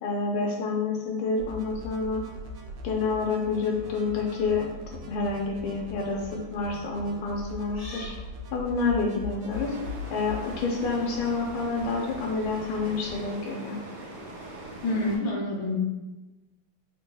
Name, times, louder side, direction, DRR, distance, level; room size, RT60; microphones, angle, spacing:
voice 1, 0.0-2.2 2.8-4.7 5.1-8.1 8.5-9.7 10.1-13.8, left 4 dB, 85° left, 0 dB, 1.5 m, -28 dB
sound 1, 1.4-13.3, left 2 dB, 85° right, 1.5 m, -41 dB
sound 2, 3.7-4.7 5.6-5.8 7.7-8.2, left 1 dB, 40° left, 0.6 m, -46 dB
sound 3, 9.5-15.2, right 2 dB, 60° right, 1.2 m, -42 dB
voice 2, 14.8-15.7, left 1 dB, 70° left, -3 dB, 1.3 m, -27 dB
3.7 x 2.2 x 3.0 m, 1.1 s
omnidirectional pair, 2.4 m